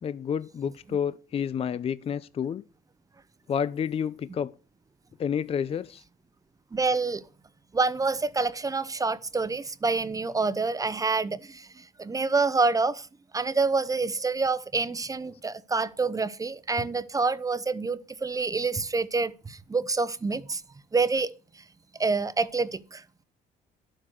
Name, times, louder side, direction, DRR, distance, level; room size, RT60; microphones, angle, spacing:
voice 1, 0.0-2.6 3.5-4.5 5.2-6.0, left 8 dB, 35° left, 0.5 m, -29 dB
voice 2, 6.7-7.2 7.7-13.1 13.3-20.6 20.9-21.3 22.0-23.0, right 4 dB, 20° right, 0.8 m, -27 dB
12.0 x 7.7 x 6.3 m
cardioid pair, 110°, 17 cm